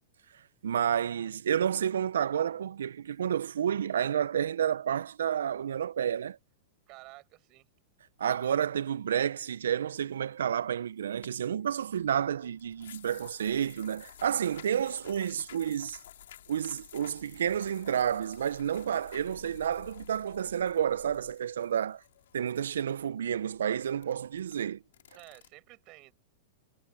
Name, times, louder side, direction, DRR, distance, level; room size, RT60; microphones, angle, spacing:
voice 1, 0.3-6.4 8.2-16.0 16.5-22.0 22.3-24.8, right 9 dB, 75° right, 1.7 m, -30 dB
voice 2, 6.9-7.7 25.1-26.1, right 21 dB, 45° right, 7.4 m, -52 dB
sound 1, 11.2-25.5, left 11 dB, 70° left, 4.6 m, -53 dB
hypercardioid pair, 100°, 0 cm